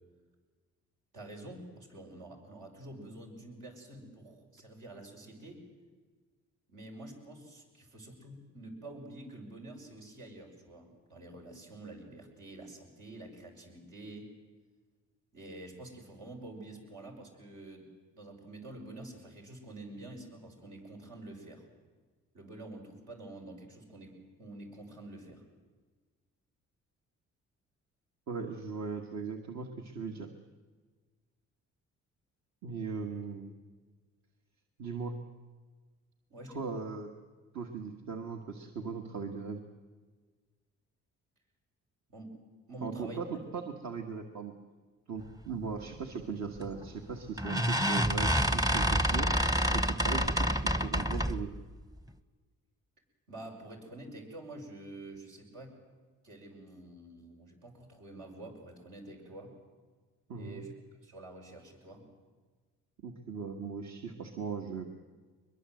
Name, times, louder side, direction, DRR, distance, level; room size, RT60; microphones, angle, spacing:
voice 1, 1.1-5.6 6.7-14.3 15.3-21.6 22.3-25.4 36.3-36.6 42.1-42.4 42.7-43.2 53.3-55.8 56.2-59.5 60.3-60.7 61.0-62.1, right 2 dB, 80° right, 1 dB, 6.0 m, -48 dB
voice 2, 28.3-30.3 32.6-33.5 34.8-35.1 36.5-37.1 37.5-39.6 42.8-44.5 45.1-49.3 49.7-50.5 50.8-51.5 60.3-60.6 63.0-64.9, right 5 dB, 60° right, 3 dB, 1.8 m, -38 dB
sound 1, 46.6-46.9 47.4-51.5, equal, 10° right, 0.9 m, -28 dB
22.5 x 22.0 x 7.8 m, 1.4 s
cardioid pair, 90°, 30 cm